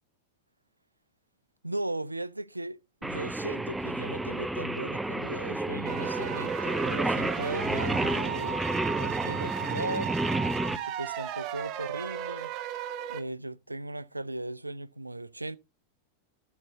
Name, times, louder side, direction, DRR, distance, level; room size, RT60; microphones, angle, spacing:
voice 1, 1.6-10.2 10.7-12.5 13.1-15.6, right 2 dB, 85° right, 0.4 m, -37 dB
Singing, 3.0-10.8, right 2 dB, 5° right, 0.6 m, -31 dB
sound 1, 5.8-13.2, right 11 dB, 40° right, 1.0 m, -35 dB
12.0 x 6.6 x 3.9 m
figure-of-eight pair, 90°, 0 cm